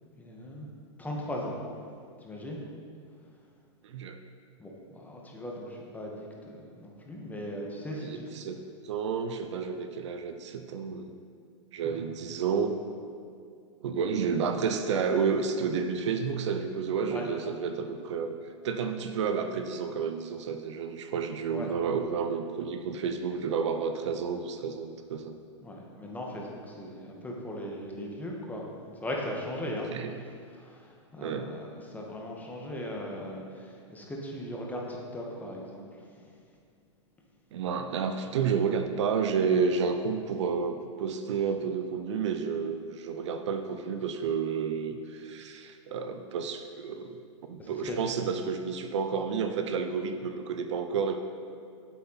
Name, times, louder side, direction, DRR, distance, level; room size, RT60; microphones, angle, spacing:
voice 1, 0.2-0.7 1.0-1.5 2.2-2.6 4.6-8.2 11.8-12.0 17.1-17.3 21.5-21.7 25.6-28.7 29.0-29.9 30.6-36.0 47.6-48.0, left 1 dB, 10° left, -2 dB, 1.7 m, -38 dB
voice 2, 3.8-4.2 7.9-8.6 8.8-11.2 11.7-12.7 13.8-18.3 18.6-25.4 29.9-30.1 31.2-31.6 37.5-51.2, right 6 dB, 70° right, 7 dB, 0.7 m, -30 dB
8.4 x 8.1 x 4.2 m, 2.3 s
hypercardioid pair, 100°, 16 cm